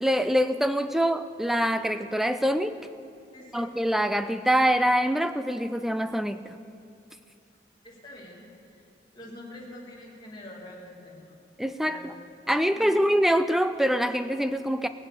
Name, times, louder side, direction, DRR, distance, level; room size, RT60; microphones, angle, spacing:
voice 1, 0.0-2.8 3.5-6.6 11.6-12.1 12.5-14.9, equal, ahead, 10 dB, 0.3 m, -25 dB
voice 2, 3.3-3.7 7.8-8.8 9.1-11.4 11.8-12.2 12.7-13.0, left 1 dB, 25° left, -4 dB, 2.4 m, -45 dB
19.0 x 7.3 x 6.9 m, 2.5 s
head